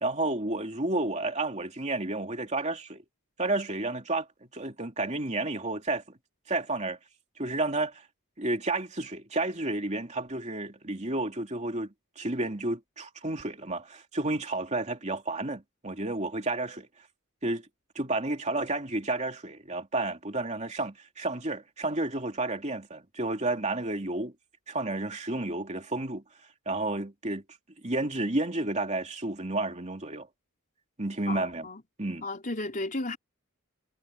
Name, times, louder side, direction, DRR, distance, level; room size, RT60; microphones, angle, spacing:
voice 1, 0.0-3.0 3.4-4.3 4.5-6.2 6.5-7.0 7.4-8.0 8.4-16.9 17.4-17.7 17.9-24.3 24.7-26.2 26.7-27.4 27.8-30.3 31.0-31.7 32.0-32.2, right 2 dB, 30° right, 3.0 m, -31 dB
voice 2, 31.3-31.8 32.2-33.2, left 2 dB, 40° left, 4.3 m, -34 dB
head